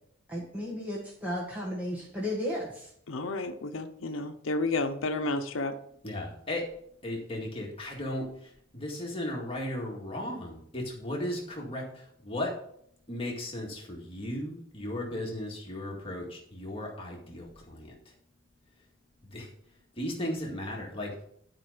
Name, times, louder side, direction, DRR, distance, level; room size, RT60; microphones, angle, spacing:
voice 1, 0.3-2.9, left 1 dB, 10° right, 1.7 m, -34 dB
voice 2, 3.1-5.8, left 2 dB, 85° left, 0.8 m, -31 dB
voice 3, 6.0-6.7 7.0-12.6 13.1-17.9 19.2-19.5 20.0-21.1, left 1 dB, 30° left, 2.0 m, -36 dB
11.0 x 5.2 x 5.0 m
head